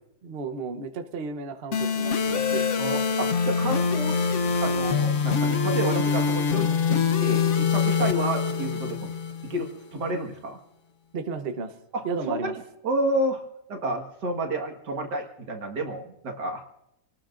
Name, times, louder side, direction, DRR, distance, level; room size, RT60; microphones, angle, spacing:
voice 1, 0.2-2.6 8.0-8.1 11.1-11.7 12.0-12.5, right 4 dB, 40° right, 7 dB, 1.0 m, -33 dB
sound 1, 1.7-9.7, left 6 dB, 55° left, 1.1 m, -24 dB
voice 2, 2.8-4.2 4.6-9.1 9.4-10.6 11.9-13.4 13.7-16.6, right 1 dB, 85° right, 3 dB, 2.3 m, -30 dB
28.5 x 18.5 x 2.6 m, 0.85 s
omnidirectional pair, 1.8 m